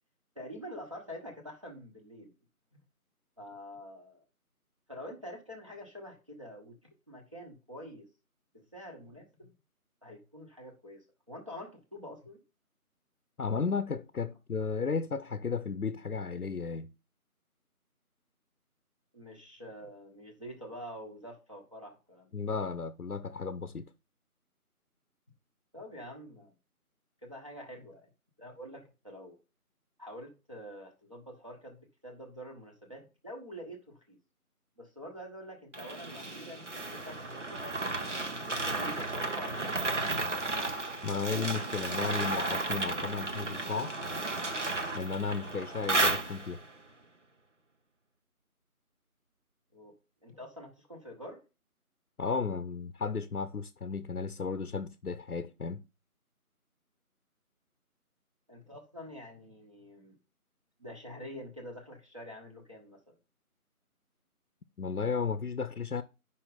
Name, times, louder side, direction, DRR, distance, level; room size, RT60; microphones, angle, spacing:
voice 1, 0.3-2.3 2.7-2.8 3.4-4.2 4.9-6.8 7.1-8.1 8.5-9.5 10.0-12.4 19.1-22.3 25.7-26.5 27.2-28.1 28.4-29.4 30.0-34.2 34.8-38.0 38.5-39.8 49.7-50.0 50.2-51.4 58.5-60.2 60.8-63.2, equal, 20° right, 1.3 m, -46 dB
voice 2, 13.4-16.9 22.3-23.9 41.0-43.9 44.9-46.6 52.2-55.8 64.8-66.0, left 5 dB, 75° left, 0.8 m, -34 dB
sound 1, 35.7-46.7, right 2 dB, 50° right, 1.2 m, -33 dB
9.8 x 5.7 x 4.0 m
figure-of-eight pair, 170°, 45 cm